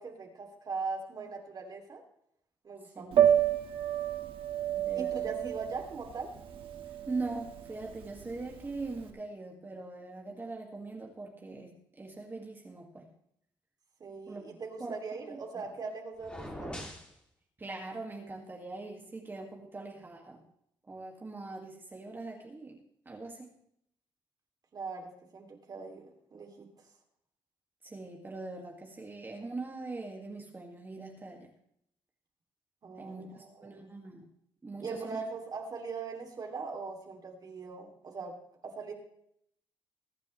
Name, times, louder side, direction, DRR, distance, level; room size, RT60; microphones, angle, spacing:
voice 1, 0.0-2.0 2.6-3.4 4.9-6.3 14.0-16.8 24.7-26.7 32.8-33.9 34.8-38.3 38.6-38.9, right 4 dB, 45° right, 2 dB, 2.7 m, -40 dB
voice 2, 2.9-3.3 4.7-5.3 7.1-13.1 14.3-14.4 14.8-15.0 15.3-15.6 17.6-20.4 20.9-22.8 23.1-23.5 27.8-31.5 33.0-34.3 34.6-35.2, right 3 dB, 25° right, 0 dB, 2.0 m, -42 dB
Piano, 3.1-9.0, right 10 dB, 80° right, 1.7 m, -30 dB
sound 1, 16.2-17.1, equal, 10° left, 2.8 m, -42 dB
21.5 x 9.5 x 3.2 m, 0.72 s
cardioid pair, 120°, 9 cm